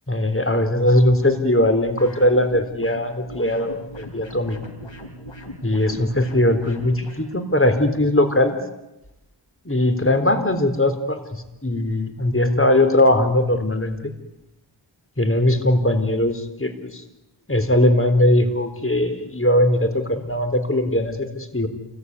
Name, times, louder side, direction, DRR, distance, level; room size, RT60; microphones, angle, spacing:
voice 1, 0.1-4.6 5.6-8.6 9.7-14.1 15.2-17.0 17.5-21.7, left 1 dB, 30° left, 8 dB, 4.0 m, -20 dB
sound 1, 1.9-7.2, equal, 85° left, 5.1 m, -39 dB
28.5 x 21.5 x 9.7 m, 0.95 s
wide cardioid pair, 45°, 44 cm